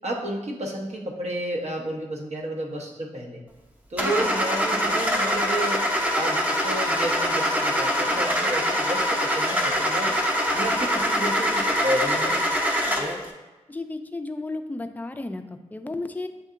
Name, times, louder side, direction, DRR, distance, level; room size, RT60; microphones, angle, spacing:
voice 1, 0.0-3.4 3.9-5.9 6.1-10.1 10.5-12.4, right 1 dB, 55° right, -1 dB, 0.9 m, -31 dB
Car / Engine starting, 4.0-13.2, equal, 10° right, 0.7 m, -24 dB
voice 2, 13.7-15.4 15.7-16.3, left 2 dB, 10° left, 6 dB, 0.4 m, -33 dB
7.3 x 2.7 x 2.4 m, 1.1 s
cardioid pair, 50°, 13 cm